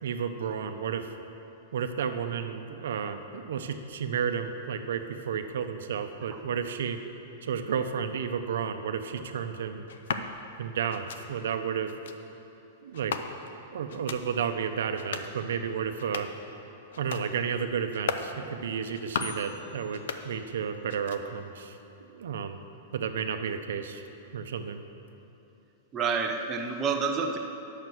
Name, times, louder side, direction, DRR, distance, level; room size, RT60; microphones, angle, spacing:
voice 1, 0.0-1.1 1.7-7.0 7.4-9.8 10.6-11.9 12.8-13.2 13.5-16.3 17.0-22.6 22.9-24.0 24.3-24.8, right 7 dB, 75° right, 7 dB, 0.6 m, -32 dB
sound 1, 9.9-10.3 10.9-11.2 11.9-12.2 12.9-13.6 13.9-14.2 14.9-15.3 15.9-16.4 16.9-17.3 17.9-18.3 18.9-19.4 19.9-20.6 20.9-21.4, left 6 dB, 65° left, 0.6 m, -37 dB
sound 2, 19.2-21.0, left 7 dB, 30° left, 1.1 m, -48 dB
voice 2, 25.9-27.4, right 5 dB, 15° right, 2 dB, 0.4 m, -28 dB
9.4 x 6.5 x 6.1 m, 3.0 s
supercardioid pair, 175°, 0 cm